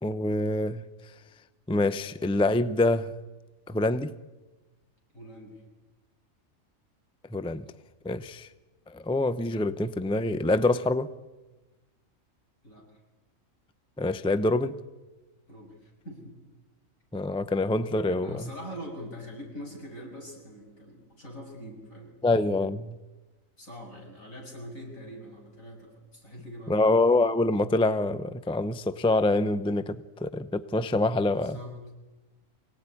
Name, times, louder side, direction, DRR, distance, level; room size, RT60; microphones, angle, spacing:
voice 1, 0.0-0.8 1.7-3.1 3.7-4.1 7.3-7.6 8.0-8.5 8.9-11.1 14.0-14.8 17.1-18.4 22.2-23.0 26.7-31.6, left 2 dB, 5° left, 0.4 m, -25 dB
voice 2, 5.1-5.6 12.6-13.0 15.5-16.3 18.2-22.1 23.6-27.0 31.3-31.8, equal, 80° left, 7.1 m, -43 dB
24.5 x 17.5 x 9.8 m
omnidirectional pair, 1.4 m